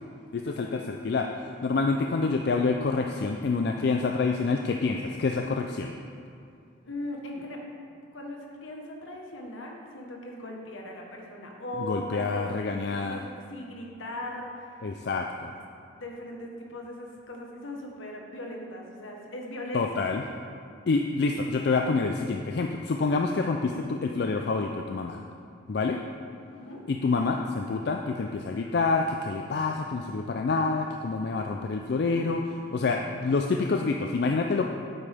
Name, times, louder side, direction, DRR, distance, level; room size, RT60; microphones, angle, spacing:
voice 1, 0.3-5.9 11.8-13.2 14.8-15.5 19.7-20.2 20.9-25.2 25.7-26.0 26.9-34.7, left 4 dB, 55° left, 3 dB, 0.4 m, -27 dB
voice 2, 6.8-7.6 8.1-12.5 13.0-14.8 15.9-20.1 26.5-26.8, left 1 dB, 75° left, 0 dB, 1.2 m, -39 dB
8.7 x 8.4 x 3.5 m, 2.4 s
head